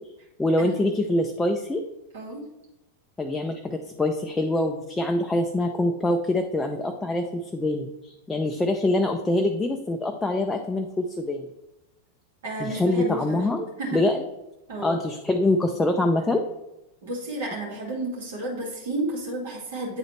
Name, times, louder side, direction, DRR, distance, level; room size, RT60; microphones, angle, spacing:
voice 1, 0.4-1.8 3.2-11.5 12.6-14.2 14.8-16.4, left 1 dB, 10° left, 4 dB, 0.5 m, -25 dB
voice 2, 2.1-2.4 12.4-13.4 13.8-14.0 14.7-15.0 17.0-20.0, right 1 dB, 60° right, -4 dB, 2.3 m, -31 dB
8.8 x 4.0 x 3.2 m, 0.92 s
figure-of-eight pair, 90°, 0 cm